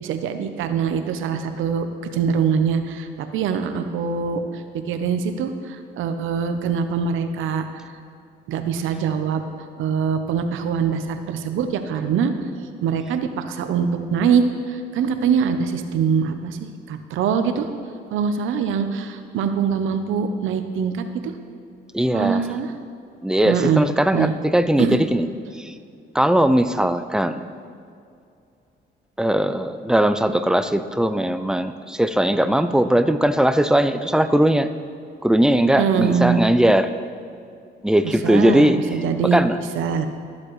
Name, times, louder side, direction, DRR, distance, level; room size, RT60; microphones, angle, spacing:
voice 1, 0.0-1.9 2.1-7.8 8.5-9.5 9.8-12.3 12.8-17.7 18.1-21.3 22.1-22.7 23.4-23.8 24.1-24.4 24.8-25.0 35.8-36.4 38.0-39.4 39.7-40.1, right 6 dB, 85° right, 8 dB, 0.7 m, -23 dB
voice 2, 21.9-22.5 23.2-25.3 25.6-25.7 26.1-27.5 29.2-34.7 35.2-36.9 37.8-39.0 39.3-39.6, right 1 dB, 5° right, 10 dB, 0.4 m, -19 dB
13.0 x 7.4 x 3.1 m, 2.4 s
cardioid pair, 90°, 20 cm